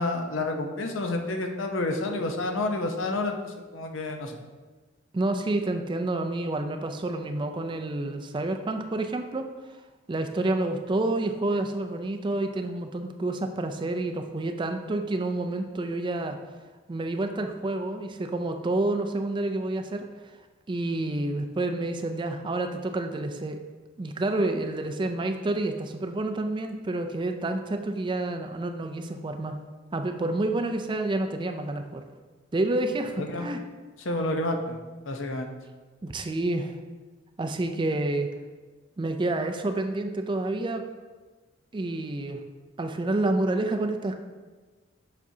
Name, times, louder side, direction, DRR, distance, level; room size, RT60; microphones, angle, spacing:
voice 1, 0.0-4.4 33.2-33.5 34.0-34.8 35.1-35.5, left 2 dB, 75° left, 4 dB, 0.7 m, -29 dB
voice 2, 5.1-9.5 10.1-16.4 16.9-20.1 20.7-23.6 24.0-29.6 29.9-32.0 32.5-33.6 36.0-36.8 37.4-38.3 39.0-40.8 41.7-42.4 42.8-44.2, right 2 dB, 25° right, 6 dB, 0.3 m, -29 dB
7.3 x 5.7 x 2.7 m, 1.3 s
head